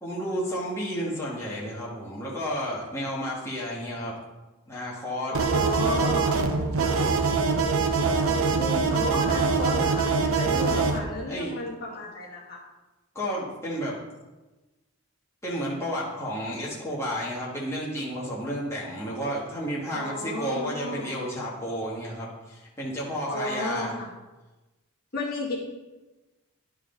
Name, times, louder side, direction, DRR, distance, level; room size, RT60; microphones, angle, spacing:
voice 1, 0.0-4.1 4.7-5.3 10.7-10.9 11.3-11.5 13.1-14.0 15.4-23.9, equal, 10° left, -6 dB, 1.7 m, -32 dB
voice 2, 5.3-6.4 8.6-12.6 19.9-21.1 23.3-24.1 25.1-25.6, left 2 dB, 45° left, -5 dB, 2.0 m, -33 dB
sound 1, 5.3-11.0, right 4 dB, 75° right, 0.7 m, -23 dB
11.0 x 4.7 x 3.9 m, 1.1 s
head